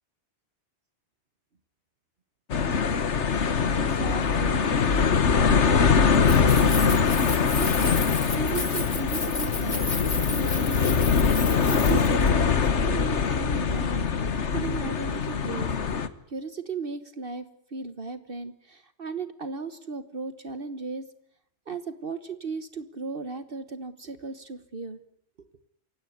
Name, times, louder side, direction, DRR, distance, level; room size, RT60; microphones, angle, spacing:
sound 1, 2.5-16.1, left 6 dB, 85° left, 1.6 m, -23 dB
voice 1, 3.7-4.7 5.3-8.0 8.3-15.7 16.3-21.1 21.7-25.0, right 4 dB, 55° right, 12 dB, 1.5 m, -36 dB
Keys jangling, 6.1-12.3, left 3 dB, 40° left, 2.1 m, -34 dB
28.0 x 17.0 x 9.5 m, 0.66 s
omnidirectional pair, 1.1 m